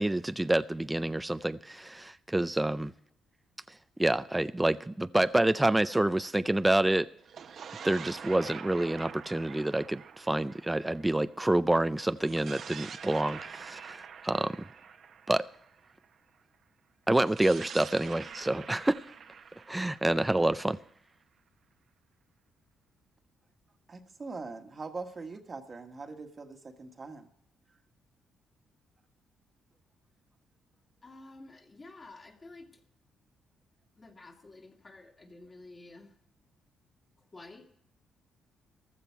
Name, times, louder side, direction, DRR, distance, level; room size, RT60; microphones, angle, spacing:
voice 1, 0.0-2.9 4.0-7.1 7.8-14.6 15.3-15.5 17.1-19.0 19.7-20.8, right 1 dB, 10° right, 0.4 m, -28 dB
sound 1, 7.2-11.6 12.2-16.1 17.2-21.0, right 7 dB, 60° right, 1.0 m, -46 dB
voice 2, 23.9-27.3, right 3 dB, 35° right, 1.4 m, -42 dB
voice 3, 31.0-32.8 34.0-36.2 37.3-37.8, left 2 dB, 30° left, 2.2 m, -51 dB
15.0 x 12.5 x 4.6 m
cardioid pair, 90°, 0 cm